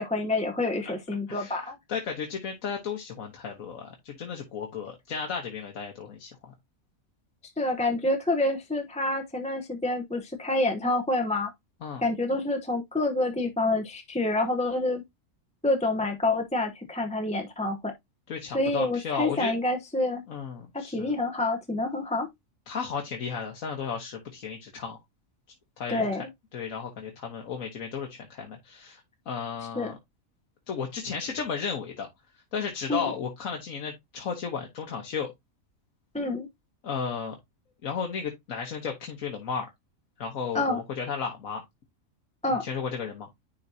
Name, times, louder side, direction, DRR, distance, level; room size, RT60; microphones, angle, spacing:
voice 1, 0.0-1.8 7.6-11.5 12.0-15.0 15.6-17.9 18.5-20.2 20.7-22.3 25.9-26.2 29.7-29.9 32.9-33.1 36.1-36.5 40.5-40.8 42.4-42.6, left 2 dB, 5° left, 0.7 m, -27 dB
voice 2, 1.3-6.3 11.8-12.0 18.3-19.5 20.3-21.1 22.7-25.0 25.8-26.2 26.5-30.0 30.7-32.1 32.5-35.3 36.8-37.3 37.8-39.7 40.2-41.6 42.5-43.3, left 6 dB, 75° left, 1.6 m, -34 dB
10.0 x 3.9 x 2.7 m
omnidirectional pair, 1.4 m